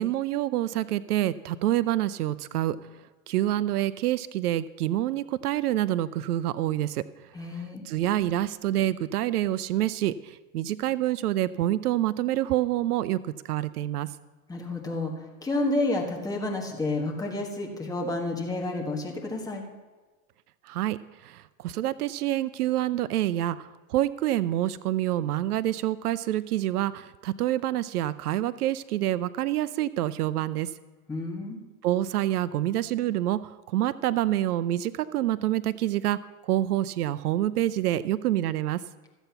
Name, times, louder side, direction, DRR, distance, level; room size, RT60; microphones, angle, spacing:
voice 1, 0.0-2.8 3.3-7.0 7.8-14.1 20.6-30.7 31.8-38.8, right 13 dB, 70° right, 17 dB, 0.6 m, -27 dB
voice 2, 7.3-7.8 14.5-19.6 31.1-31.6, left 2 dB, 10° left, 0 dB, 1.5 m, -30 dB
13.5 x 8.0 x 5.7 m, 1.3 s
hypercardioid pair, 140°, 47 cm